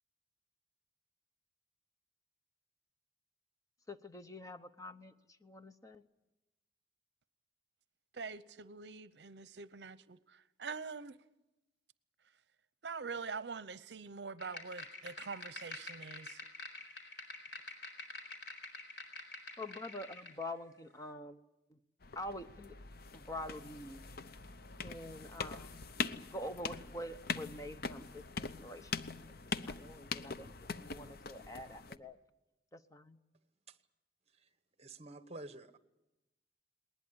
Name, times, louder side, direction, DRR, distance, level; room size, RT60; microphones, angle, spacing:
voice 1, 3.9-6.0 19.6-21.4 21.7-21.8 22.1-22.7 23.1-24.0 24.8-25.8 26.2-28.9 29.2-29.3 29.7-30.5 30.8-32.2 32.7-33.2, left 1 dB, 20° left, 0.9 m, -46 dB
voice 2, 8.1-11.2 12.8-16.4, right 5 dB, 70° right, 0.7 m, -44 dB
sound 1, 14.4-20.4, left 2 dB, 75° left, 4.3 m, -48 dB
sound 2, 22.0-32.0, left 4 dB, 60° left, 0.8 m, -43 dB
voice 3, 34.8-35.8, right 2 dB, 35° right, 1.2 m, -49 dB
20.0 x 20.0 x 9.9 m
head